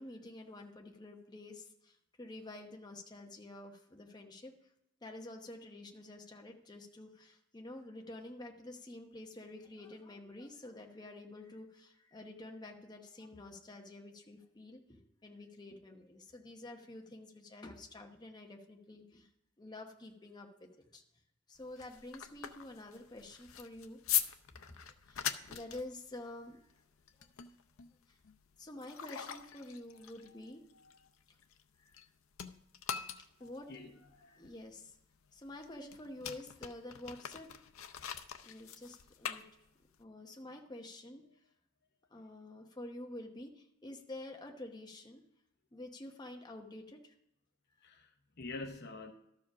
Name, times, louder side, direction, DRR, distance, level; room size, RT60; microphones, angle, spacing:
voice 1, 0.0-4.5 5.0-19.3 19.6-21.0 21.5-24.0 24.5-24.6 25.1-26.6 27.2-27.3 28.1-28.2 28.6-30.6 31.8-32.0 33.4-33.7 34.2-35.0 35.3-37.5 38.4-39.4 40.0-41.2 42.1-45.2 45.7-47.1 47.8-47.9, left 1 dB, 20° left, 2 dB, 1.0 m, -49 dB
sound 1, 21.6-32.1 32.3-40.0, left 10 dB, 90° left, 0.6 m, -42 dB
voice 2, 33.4-34.4 47.8-49.1, left 3 dB, 55° left, 6 dB, 0.9 m, -47 dB
12.5 x 4.9 x 6.1 m, 0.83 s
head